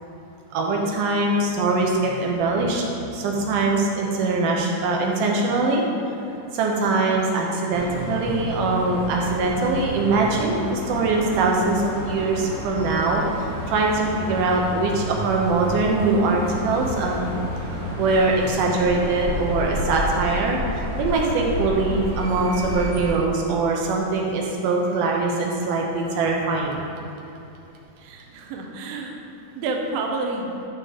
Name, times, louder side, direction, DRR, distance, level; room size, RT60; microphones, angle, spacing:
voice 1, 0.5-5.8 6.5-17.3 17.7-26.8, right 3 dB, 85° right, 0 dB, 2.6 m, -22 dB
sound 1, 7.7-23.1, equal, 50° right, 2.1 m, -31 dB
voice 2, 28.0-29.3 29.5-30.6, right 3 dB, 70° right, 1 dB, 1.7 m, -29 dB
11.0 x 3.7 x 5.1 m, 2.9 s
omnidirectional pair, 3.6 m